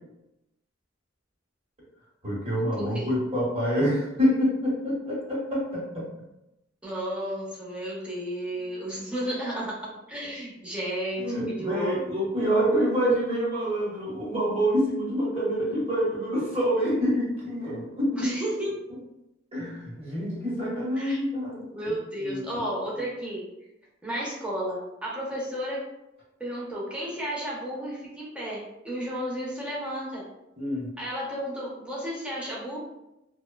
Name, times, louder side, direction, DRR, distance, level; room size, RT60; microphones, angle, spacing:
voice 1, 2.2-6.1 11.2-18.3 19.5-22.6 30.6-30.9, equal, 30° right, -6 dB, 1.0 m, -27 dB
voice 2, 2.8-3.1 6.8-12.2 18.1-18.8 21.0-21.2 21.7-23.4 24.0-25.9 26.4-30.2 31.0-32.8, equal, 5° right, -6 dB, 0.7 m, -33 dB
3.0 x 2.1 x 2.2 m, 0.91 s
head